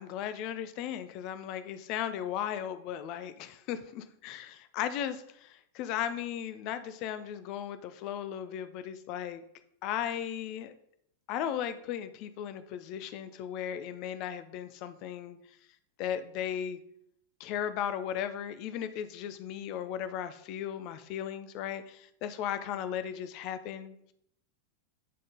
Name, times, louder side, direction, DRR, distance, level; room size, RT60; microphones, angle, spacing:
voice 1, 0.0-9.4 9.8-10.7 11.3-15.4 16.0-16.8 17.4-24.1, left 9 dB, 40° left, 11 dB, 0.5 m, -36 dB
9.3 x 3.8 x 3.8 m, 0.74 s
figure-of-eight pair, 90°, 0 cm